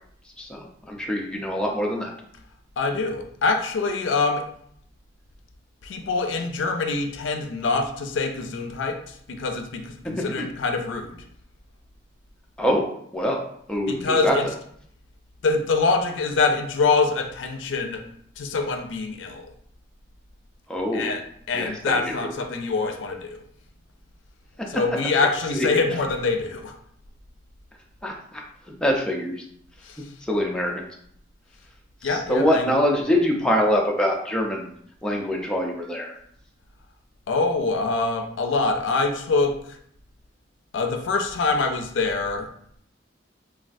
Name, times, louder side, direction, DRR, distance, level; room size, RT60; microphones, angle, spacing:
voice 1, 0.4-2.1 10.0-10.5 12.6-13.4 13.7-14.4 20.7-21.2 21.5-22.3 24.6-24.7 25.5-25.7 28.0-28.4 28.7-29.4 30.2-30.9 32.0-34.7 35.0-36.1, equal, 5° left, -1 dB, 0.3 m, -24 dB
voice 2, 2.8-4.4 5.8-11.2 13.9-14.4 15.4-18.0 18.4-19.5 20.9-21.2 21.5-23.4 24.7-26.8 29.9-30.0 32.0-32.7 37.3-39.6 40.7-42.5, left 4 dB, 85° left, 5 dB, 0.4 m, -24 dB
3.2 x 2.3 x 2.5 m, 0.66 s
head